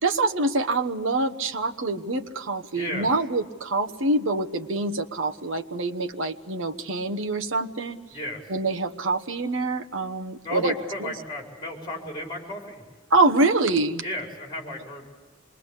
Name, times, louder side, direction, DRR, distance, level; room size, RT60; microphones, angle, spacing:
voice 1, 0.0-8.0 8.5-10.7 11.0-11.1 13.1-14.0, right 2 dB, 75° right, 7 dB, 1.2 m, -25 dB
voice 2, 2.7-3.1 8.1-8.4 10.4-12.8 14.0-15.0, left 1 dB, 25° left, 1 dB, 5.3 m, -34 dB
27.0 x 21.5 x 8.3 m, 1.4 s
head